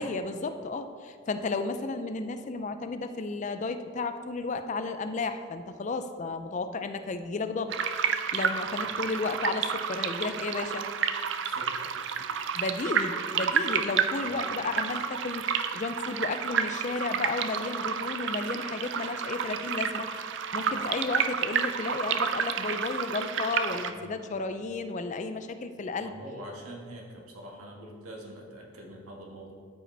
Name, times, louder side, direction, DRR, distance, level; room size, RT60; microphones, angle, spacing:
voice 1, 0.0-10.9 12.5-20.1 20.5-26.1, left 3 dB, 35° left, 9 dB, 0.3 m, -33 dB
sound 1, 7.7-23.9, right 7 dB, 55° right, 0.4 m, -30 dB
voice 2, 11.4-12.3 14.2-14.4 20.7-20.9 23.9-24.4 26.0-29.5, equal, 90° right, -1 dB, 1.5 m, -45 dB
12.5 x 5.0 x 3.3 m, 2.3 s
head